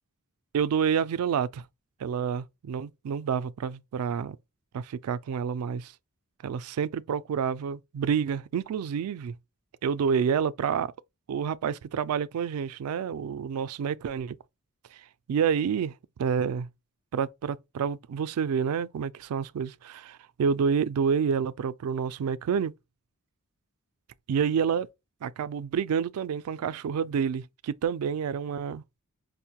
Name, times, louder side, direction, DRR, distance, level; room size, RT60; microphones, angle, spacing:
voice 1, 0.5-1.6 2.0-4.4 4.7-5.9 6.4-9.4 9.8-10.9 11.3-14.4 14.9-15.0 15.3-15.9 16.2-16.7 17.1-22.7 24.3-24.9 25.2-28.8, right 7 dB, 80° right, 0.3 m, -28 dB
5.1 x 2.1 x 2.8 m
head